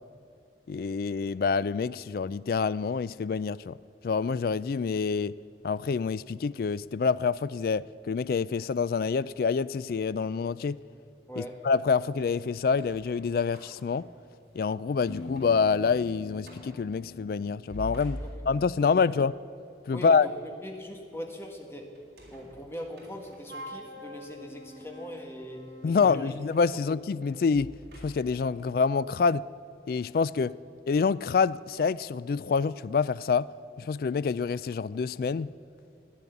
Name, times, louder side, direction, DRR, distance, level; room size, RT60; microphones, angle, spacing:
voice 1, 0.7-3.8 4.0-5.4 5.6-10.8 11.4-14.1 14.5-19.3 19.9-20.3 25.8-27.7 28.0-29.4 29.9-30.6 30.9-33.5 33.8-35.5, left 5 dB, 55° left, 0.3 m, -27 dB
voice 2, 11.3-11.7 18.2-19.1 19.9-20.3 20.6-21.9 22.3-26.3 26.7-26.9, equal, 15° left, 1.6 m, -41 dB
sound 1, 12.5-14.6 15.0-15.6 15.9-16.0 16.4-16.8 17.5-18.8 21.9-23.7 24.4-24.5 26.3-28.5, equal, 60° right, 3.6 m, -45 dB
Piano, 15.1-18.8, left 3 dB, 70° left, 1.2 m, -45 dB
Wind instrument woodwind instrument, 23.5-26.3, left 1 dB, 75° right, 2.6 m, -45 dB
14.5 x 10.0 x 8.2 m
head